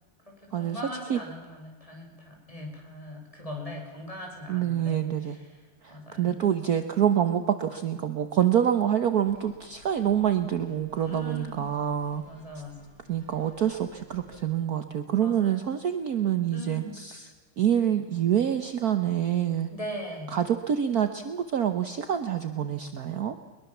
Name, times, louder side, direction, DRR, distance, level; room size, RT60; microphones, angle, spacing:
voice 1, 0.6-5.4 5.9-6.3 11.0-11.7 12.2-12.7 15.2-15.6 16.5-17.0 19.7-20.4, equal, 15° left, 0 dB, 6.5 m, -40 dB
voice 2, 4.5-5.4 5.8-12.2 12.5-12.6 13.1-17.3 17.6-19.7 20.3-23.4, right 9 dB, 55° right, 9 dB, 1.4 m, -26 dB
sound 1, 9.2-14.4, right 1 dB, 65° left, 7.4 m, -55 dB
22.5 x 22.0 x 7.2 m, 1.4 s
omnidirectional pair, 2.2 m